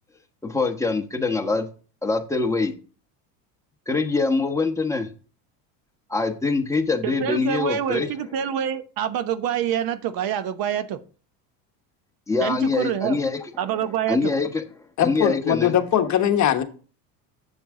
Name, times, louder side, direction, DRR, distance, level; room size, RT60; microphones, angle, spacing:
voice 1, 0.4-1.7 2.0-2.7 3.9-5.1 6.1-8.1 12.3-13.4 14.1-14.6 15.0-15.8, left 3 dB, 5° left, 1.2 m, -24 dB
voice 2, 7.0-11.0 12.4-13.2 13.6-14.3, right 9 dB, 50° right, 1.0 m, -26 dB
voice 3, 15.0-16.6, left 10 dB, 40° left, 1.2 m, -21 dB
7.4 x 7.1 x 3.7 m
supercardioid pair, 105°, 45 cm